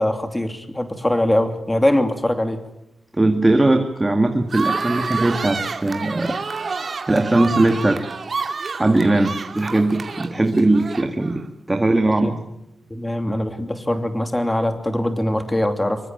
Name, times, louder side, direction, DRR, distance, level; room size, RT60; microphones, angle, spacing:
voice 1, 0.0-2.6 12.2-12.3 12.9-16.0, left 1 dB, 10° left, 7 dB, 2.9 m, -22 dB
voice 2, 3.1-6.4 7.1-8.0 8.4-8.5 8.8-11.4 11.7-12.3, right 2 dB, 15° right, 5 dB, 2.0 m, -19 dB
sound 1, 4.5-11.4, right 4 dB, 45° right, 2.6 m, -29 dB
25.5 x 24.0 x 9.1 m, 0.86 s
wide cardioid pair, 150°, 0 cm